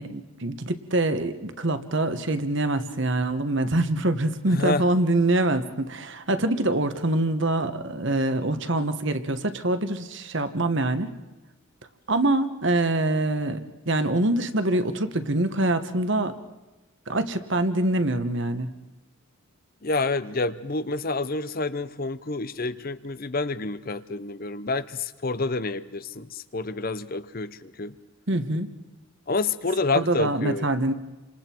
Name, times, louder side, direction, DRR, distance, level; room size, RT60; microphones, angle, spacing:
voice 1, 0.0-11.1 12.1-13.6 13.8-16.3 17.1-18.7 28.3-28.7 29.9-30.9, right 2 dB, 55° right, 9 dB, 1.3 m, -25 dB
voice 2, 4.5-4.8 19.8-27.9 29.3-30.7, left 3 dB, 40° left, 14 dB, 0.7 m, -28 dB
30.0 x 26.0 x 4.6 m, 1.1 s
head